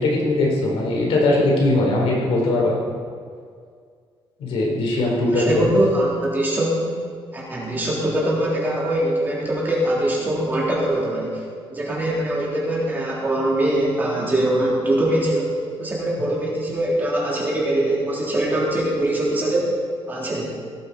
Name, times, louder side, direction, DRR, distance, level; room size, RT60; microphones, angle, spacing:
voice 1, 0.0-2.8 4.4-5.6, left 2 dB, 80° left, -3 dB, 4.4 m, -20 dB
voice 2, 5.3-6.8 7.3-11.4 11.7-15.5 15.8-19.7 20.1-20.6, right 1 dB, 20° right, -5 dB, 3.7 m, -22 dB
17.5 x 14.5 x 4.3 m, 2.1 s
cardioid pair, 175°, 10 cm